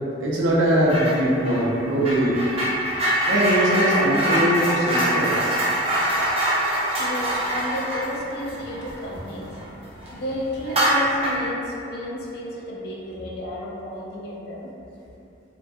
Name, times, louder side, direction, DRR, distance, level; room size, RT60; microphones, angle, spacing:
voice 1, 0.2-2.4 3.3-5.3, right 1 dB, 85° right, -5 dB, 0.5 m, -21 dB
sound 1, 0.9-1.2 1.4-9.6 10.0-10.1 10.6-11.5, right 1 dB, 30° right, 0.4 m, -24 dB
voice 2, 6.7-14.7, left 1 dB, 55° left, -3 dB, 0.4 m, -32 dB
2.3 x 2.1 x 2.5 m, 2.7 s
head